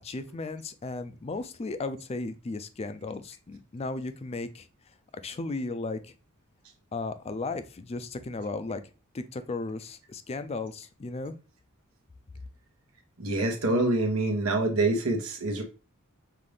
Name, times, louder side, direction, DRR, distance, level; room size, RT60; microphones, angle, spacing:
voice 1, 0.0-4.7 5.2-6.1 6.9-8.8 9.1-11.3, left 3 dB, 30° left, 11 dB, 0.4 m, -35 dB
voice 2, 13.2-15.6, right 2 dB, 90° right, 2 dB, 1.0 m, -26 dB
5.6 x 2.5 x 3.3 m, 0.32 s
head